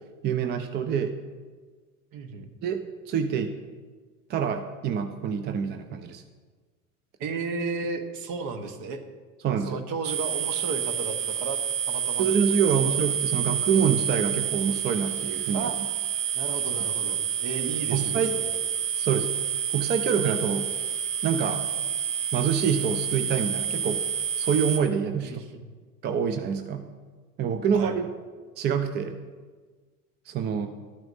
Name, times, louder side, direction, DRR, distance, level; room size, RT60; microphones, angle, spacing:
voice 1, 0.2-1.1 2.6-3.5 4.3-6.2 9.4-9.8 12.2-15.7 17.9-18.3 19.0-19.3 19.7-20.7 21.2-21.7 22.3-24.0 24.4-25.4 26.0-26.9 27.4-28.1 28.6-29.2 30.3-30.7, right 7 dB, 25° right, 8 dB, 0.4 m, -26 dB
voice 2, 2.1-2.5 7.2-9.0 9.7-11.6 11.9-12.3 12.6-12.9 15.5-15.8 16.3-18.5 25.2-25.7 27.7-27.9, right 4 dB, 45° right, 7 dB, 1.2 m, -34 dB
sound 1, 10.0-24.8, right 9 dB, 65° right, 1.2 m, -29 dB
13.0 x 8.9 x 2.7 m, 1.4 s
figure-of-eight pair, 75°, 46 cm